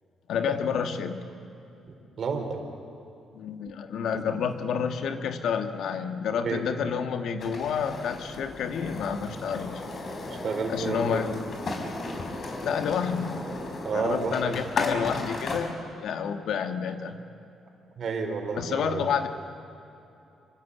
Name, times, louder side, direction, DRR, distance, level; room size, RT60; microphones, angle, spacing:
voice 1, 0.3-1.2 3.3-9.8 10.7-11.4 12.6-13.5 13.9-17.2 18.6-19.3, left 7 dB, 75° left, 7 dB, 1.7 m, -29 dB
voice 2, 2.2-2.6 4.1-4.2 6.4-6.6 10.3-11.3 13.8-14.4 18.0-19.0, right 5 dB, 55° right, 4 dB, 4.3 m, -30 dB
sound 1, 7.4-15.7, left 2 dB, 50° left, 4.7 m, -35 dB
27.0 x 23.5 x 8.5 m, 2.8 s
cardioid pair, 90°, 0 cm